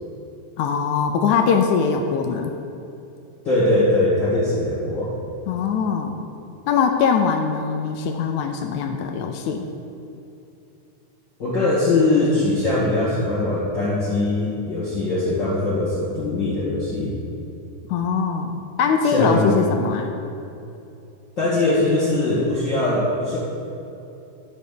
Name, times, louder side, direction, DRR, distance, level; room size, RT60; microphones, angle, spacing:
voice 1, 0.6-2.5 5.5-6.2 6.7-9.7 17.9-20.1, left 6 dB, 80° left, 5 dB, 1.9 m, -22 dB
voice 2, 3.4-5.1 11.4-17.2 19.0-19.6 21.4-23.4, left 2 dB, 40° left, -11 dB, 2.2 m, -21 dB
11.0 x 5.2 x 6.7 m, 2.8 s
omnidirectional pair, 3.6 m